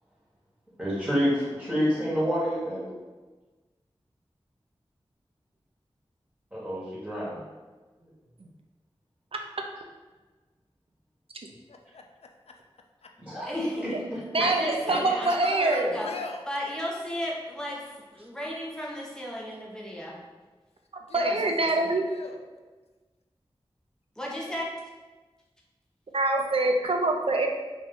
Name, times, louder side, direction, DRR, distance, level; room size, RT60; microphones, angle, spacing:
voice 1, 0.8-2.9 6.5-7.4 8.0-8.1 13.2-14.2, equal, 10° right, -8 dB, 1.4 m, -28 dB
voice 2, 11.7-12.0 14.7-14.8 15.2-16.4 21.0-22.4, left 4 dB, 80° left, 3 dB, 0.4 m, -40 dB
voice 3, 13.5-14.1 14.4-16.1 16.5-20.2 21.1-21.4 21.8-21.9 24.2-24.7, equal, 5° left, -4 dB, 0.9 m, -34 dB
voice 4, 14.3-16.0 21.1-22.0 26.1-27.5, right 2 dB, 65° right, 2 dB, 0.5 m, -25 dB
3.1 x 3.1 x 3.7 m, 1.3 s
wide cardioid pair, 50°, 10 cm